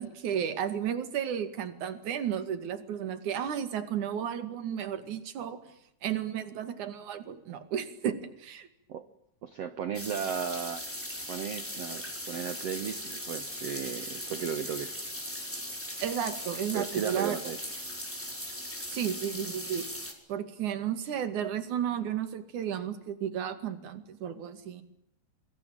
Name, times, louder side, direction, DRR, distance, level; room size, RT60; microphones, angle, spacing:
voice 1, 0.0-5.6 6.0-8.7 16.0-17.3 18.9-19.8 20.3-24.8, right 9 dB, 55° right, 11 dB, 3.3 m, -33 dB
voice 2, 9.4-10.8 11.3-14.9 16.7-17.6, right 8 dB, 80° right, 12 dB, 1.4 m, -35 dB
sound 1, 9.9-20.1, equal, 5° left, 4.2 m, -39 dB
27.0 x 23.0 x 9.0 m, 0.75 s
omnidirectional pair, 4.6 m